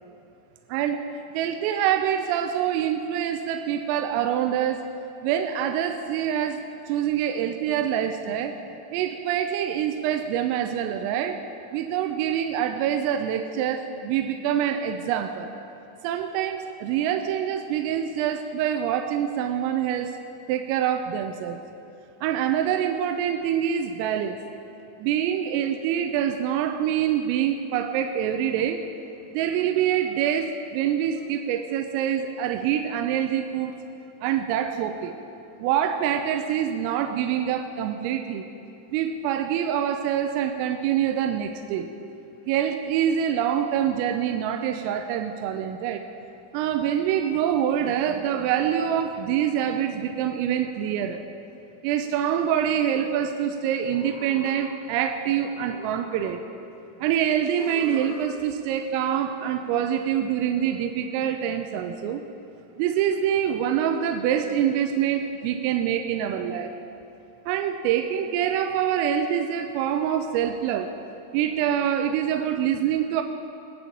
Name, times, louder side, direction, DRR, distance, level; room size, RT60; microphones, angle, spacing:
voice 1, 0.7-1.0 1.3-4.9 5.2-8.6 8.9-11.4 11.7-15.5 16.0-20.2 20.5-21.6 22.2-24.4 25.0-28.8 29.3-33.7 34.2-35.2 35.6-38.5 38.9-41.9 42.5-46.1 46.5-51.2 51.8-56.4 57.0-62.2 62.8-66.7 67.5-70.9 71.3-73.2, right 9 dB, 90° right, 6 dB, 3.3 m, -25 dB
sound 1, 53.8-55.2 55.5-56.8 57.5-58.8, left 7 dB, 80° left, 2.7 m, -44 dB
20.5 x 7.5 x 8.5 m, 2.9 s
omnidirectional pair, 6.0 m